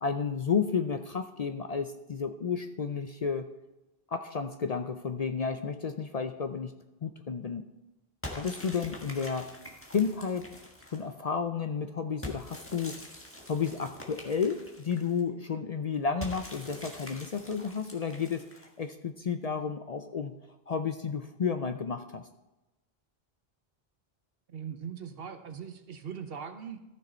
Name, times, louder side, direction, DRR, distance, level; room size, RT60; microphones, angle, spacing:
voice 1, 0.0-3.5 4.1-6.7 7.0-7.7 8.4-9.5 9.9-10.4 10.9-13.0 13.5-18.4 18.8-20.4 20.7-22.3, left 6 dB, 50° left, 8 dB, 0.5 m, -32 dB
sound 1, 8.2-11.1 12.2-15.2 16.2-18.9, left 1 dB, 15° left, 1.4 m, -45 dB
voice 2, 24.5-26.8, right 7 dB, 70° right, 8 dB, 1.1 m, -40 dB
14.0 x 6.4 x 4.3 m, 1.0 s
omnidirectional pair, 1.0 m